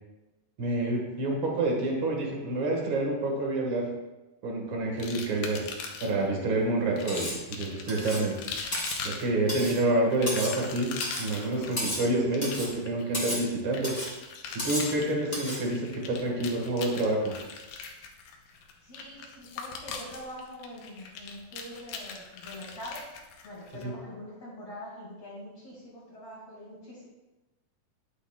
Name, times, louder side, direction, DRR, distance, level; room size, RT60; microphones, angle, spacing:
voice 1, 0.6-3.9 4.4-5.7 6.0-8.4 9.0-10.9 11.2-13.9 14.5-17.3 23.8-23.9, right 2 dB, 45° right, -1 dB, 1.8 m, -28 dB
sound 1, 5.0-6.3 7.0-23.8, left 5 dB, 75° left, 2.5 m, -41 dB
Cutlery silverware, 7.1-7.4 7.9-8.3 8.7-9.0 9.5-9.8 10.3-10.6 11.0-11.3 11.8-12.1 12.4-12.7 13.1-13.5 13.8-14.1 14.6-14.9 15.3-15.6, left 1 dB, 10° left, 2.4 m, -33 dB
voice 2, 18.5-23.0 23.4-27.1, equal, 45° left, -7 dB, 3.3 m, -44 dB
11.5 x 8.1 x 2.4 m, 1.1 s
omnidirectional pair, 4.5 m